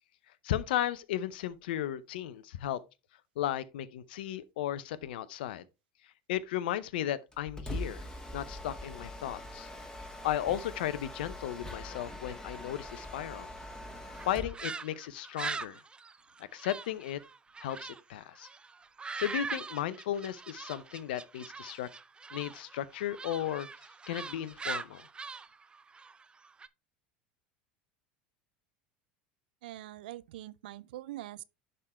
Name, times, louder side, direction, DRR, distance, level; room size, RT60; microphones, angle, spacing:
voice 1, 0.4-2.8 3.4-5.6 6.3-8.1 8.3-9.7 10.2-13.5 14.3-15.8 16.5-17.2 17.6-18.5 19.2-21.9 22.3-23.7 24.1-25.0, left 12 dB, 80° left, 0.6 m, -35 dB
Mechanisms, 7.3-14.6, left 1 dB, 15° left, 1.8 m, -42 dB
sound 1, 14.1-18.0 18.3-26.7, right 4 dB, 20° right, 0.5 m, -42 dB
voice 2, 29.6-31.4, right 15 dB, 80° right, 0.4 m, -43 dB
11.0 x 3.8 x 3.2 m
hypercardioid pair, 90°, 5 cm